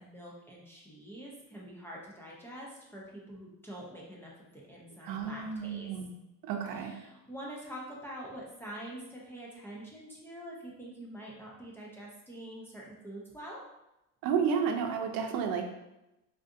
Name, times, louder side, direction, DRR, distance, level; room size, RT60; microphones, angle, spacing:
voice 1, 0.0-5.9 6.7-13.6, right 1 dB, 5° left, -5 dB, 0.3 m, -45 dB
voice 2, 5.0-6.1 6.4-6.9 14.2-15.6, right 6 dB, 85° right, 4 dB, 0.6 m, -31 dB
3.6 x 2.5 x 2.5 m, 0.91 s
cardioid pair, 165°, 34 cm